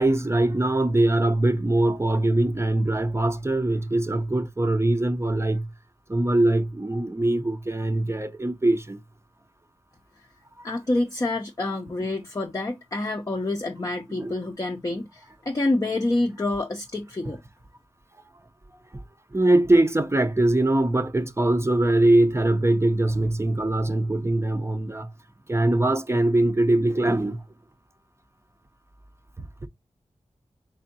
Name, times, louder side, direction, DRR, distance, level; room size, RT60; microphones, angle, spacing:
voice 1, 0.0-5.7 6.1-9.0 14.2-14.3 18.9-19.0 19.3-25.1 25.5-27.4 29.6-29.7, right 1 dB, 20° right, 0.6 m, -22 dB
voice 2, 10.6-17.4, left 2 dB, 30° left, 0.5 m, -27 dB
3.6 x 3.4 x 2.7 m
cardioid pair, 55°, 12 cm